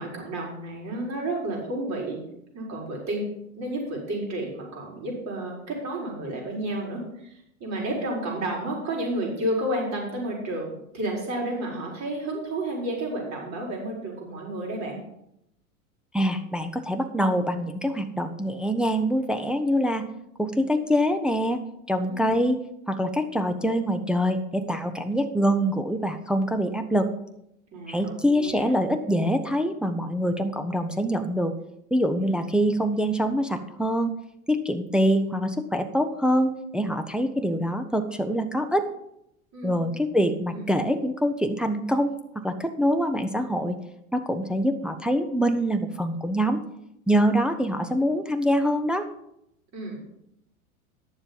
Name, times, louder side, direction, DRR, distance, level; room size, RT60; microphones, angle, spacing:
voice 1, 0.0-2.2 2.5-3.2 3.5-7.3 7.6-15.0 22.1-22.3 27.7-28.6 39.5-39.8 40.5-40.6 49.7-50.0, right 1 dB, 40° right, -2 dB, 4.7 m, -31 dB
voice 2, 16.1-20.0 20.4-21.6 21.9-22.6 22.9-27.1 27.9-31.5 31.9-34.1 34.5-38.9 39.6-42.2 42.4-43.8 44.1-46.6 47.1-49.1, equal, ahead, 6 dB, 0.6 m, -24 dB
10.5 x 7.1 x 5.3 m, 0.79 s
hypercardioid pair, 95°, 43 cm